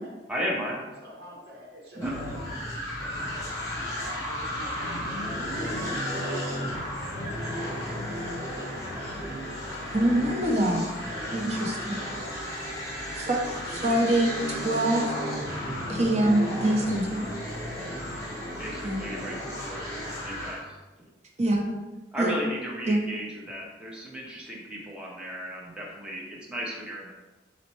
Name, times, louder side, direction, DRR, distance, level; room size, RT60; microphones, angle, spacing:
voice 1, 0.3-0.8 2.0-2.2 18.6-19.9 20.2-20.6 22.1-27.1, equal, 5° right, -4 dB, 0.8 m, -35 dB
voice 2, 1.0-3.3 3.9-7.4 7.8-8.1, left 1 dB, 65° right, -3 dB, 1.1 m, -47 dB
sound 1, 2.0-20.6, equal, 20° left, 1.3 m, -33 dB
voice 3, 9.9-10.8 11.3-12.0 13.1-13.4 13.7-15.1 15.9-17.3 18.8-19.0 21.4-21.6 22.2-22.4 22.9-23.0, right 1 dB, 40° right, 0 dB, 0.6 m, -25 dB
4.1 x 4.0 x 3.0 m, 1.2 s
head